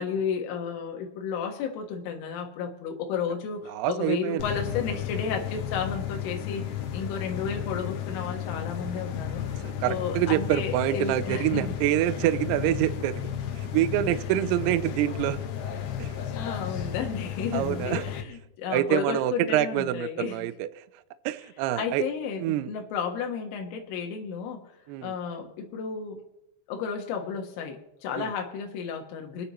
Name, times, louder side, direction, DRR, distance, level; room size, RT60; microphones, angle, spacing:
voice 1, 0.0-11.7 16.4-20.5 21.8-24.6 25.0-26.2 26.7-29.5, left 6 dB, 90° left, 2 dB, 4.0 m, -33 dB
voice 2, 3.7-4.5 9.6-13.2 13.6-15.4 16.0-16.1 17.5-18.0 18.7-20.7 21.3-22.0 22.4-22.7 24.9-25.1 28.2-28.3, right 13 dB, 85° right, 12 dB, 2.3 m, -26 dB
sound 1, 4.4-18.2, left 9 dB, 70° left, 2.9 m, -33 dB
26.0 x 10.0 x 3.0 m, 0.89 s
omnidirectional pair, 5.5 m